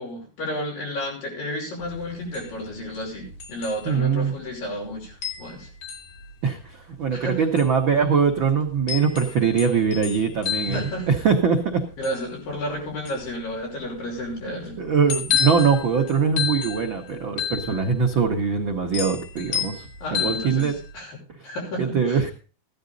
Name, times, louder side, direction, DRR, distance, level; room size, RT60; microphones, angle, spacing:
voice 1, 0.0-5.7 7.1-7.4 10.6-11.1 12.0-14.8 20.0-22.2, equal, 65° left, -2 dB, 7.4 m, -32 dB
sound 1, 1.8-20.9, left 8 dB, 85° left, 4.4 m, -32 dB
voice 2, 3.8-4.3 6.4-11.8 14.8-19.9 20.1-20.8 21.8-22.3, right 6 dB, 85° right, 2 dB, 1.0 m, -22 dB
15.0 x 12.0 x 3.9 m, 0.37 s
omnidirectional pair, 4.2 m